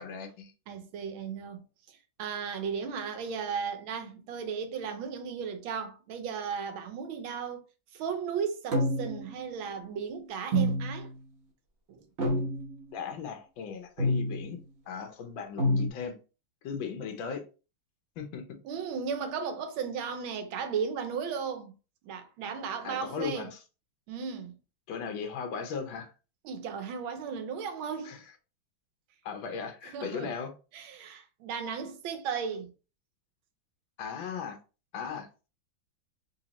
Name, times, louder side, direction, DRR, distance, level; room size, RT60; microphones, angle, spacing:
voice 1, 0.0-0.5 12.9-14.6 14.9-16.2 16.6-17.4 18.2-18.4 22.8-23.5 24.9-26.1 28.0-28.2 29.2-30.5 34.0-34.6 34.9-35.3, left 6 dB, 75° left, 1.5 m, -37 dB
voice 2, 0.7-7.6 7.9-11.1 11.9-12.1 18.6-21.7 22.0-23.5 24.1-24.6 26.4-28.2 29.9-30.3 30.7-32.7, right 6 dB, 85° right, 1.5 m, -35 dB
sound 1, 8.7-9.3 10.5-11.1 12.2-12.8 14.0-14.5 15.6-15.9, equal, 45° right, 0.9 m, -27 dB
4.0 x 2.8 x 2.9 m
omnidirectional pair, 2.2 m